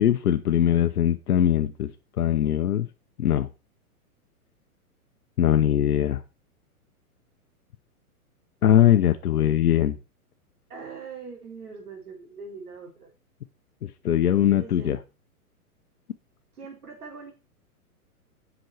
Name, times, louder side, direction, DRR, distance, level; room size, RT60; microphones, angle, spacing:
voice 1, 0.0-1.9 2.2-2.9 3.2-3.5 5.4-6.2 8.6-10.0 13.8-15.0, left 10 dB, 75° left, 8 dB, 0.9 m, -21 dB
voice 2, 10.7-13.1 14.5-15.0 16.6-17.3, right 5 dB, 80° right, 1 dB, 3.7 m, -41 dB
7.7 x 6.2 x 4.5 m, 0.29 s
hypercardioid pair, 115°, 45 cm